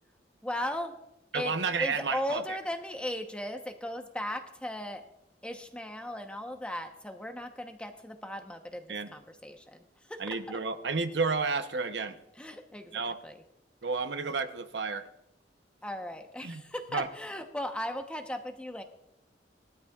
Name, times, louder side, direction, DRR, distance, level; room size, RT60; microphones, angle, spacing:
voice 1, 0.4-1.0 1.3-5.1 5.4-10.6 12.3-13.4 15.8-18.8, left 1 dB, 5° left, 5 dB, 1.0 m, -37 dB
voice 2, 1.3-2.4 8.9-9.1 10.2-12.2 12.9-13.2 13.8-15.1 16.4-16.6 16.9-17.1, right 4 dB, 85° right, 8 dB, 0.9 m, -31 dB
19.5 x 13.0 x 2.4 m, 0.85 s
head